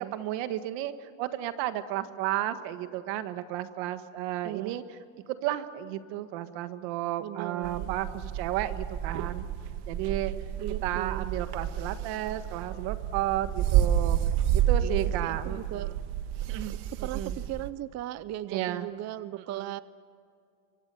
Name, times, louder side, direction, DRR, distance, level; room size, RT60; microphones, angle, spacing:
voice 1, 0.0-4.8 5.3-9.5 9.9-10.3 10.8-14.2 14.5-15.8 16.5-16.8 17.1-17.4 18.5-18.9 19.5-19.7, right 13 dB, 85° right, 10 dB, 1.7 m, -33 dB
voice 2, 4.4-4.8 7.2-8.0 10.6-11.3 14.8-15.9 16.7-19.8, right 14 dB, 40° right, 16 dB, 0.6 m, -38 dB
sound 1, 7.6-17.7, right 10 dB, 70° right, 1.6 m, -30 dB
24.0 x 23.5 x 7.0 m, 2.4 s
cardioid pair, 145°, 42 cm